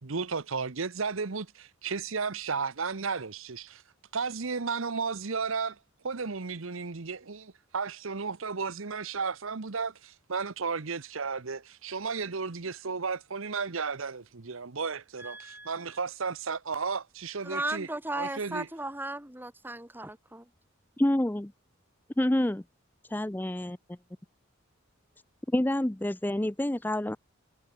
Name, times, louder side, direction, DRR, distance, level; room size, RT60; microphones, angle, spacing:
voice 1, 0.0-3.8 4.1-5.8 6.0-17.9 18.1-18.7, right 5 dB, 75° right, 1.0 m, -34 dB
voice 2, 15.2-16.0 17.4-20.5, right 2 dB, 10° right, 1.5 m, -36 dB
voice 3, 21.0-21.5 22.2-22.6 23.1-23.8 25.5-27.2, left 1 dB, 10° left, 0.5 m, -27 dB
head